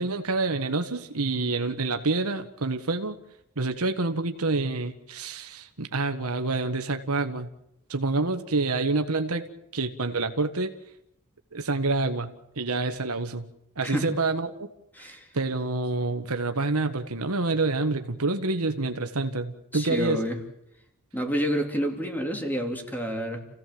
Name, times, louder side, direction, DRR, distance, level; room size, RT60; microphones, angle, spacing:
voice 1, 0.0-3.2 3.6-7.5 7.9-9.4 9.7-10.7 11.5-13.5 13.8-14.7 15.0-15.1 15.3-20.2, right 3 dB, 80° right, 7 dB, 1.5 m, -27 dB
voice 2, 14.9-15.3 19.7-20.4 21.1-23.4, equal, 10° left, 3 dB, 3.1 m, -29 dB
29.0 x 16.5 x 7.8 m, 0.80 s
head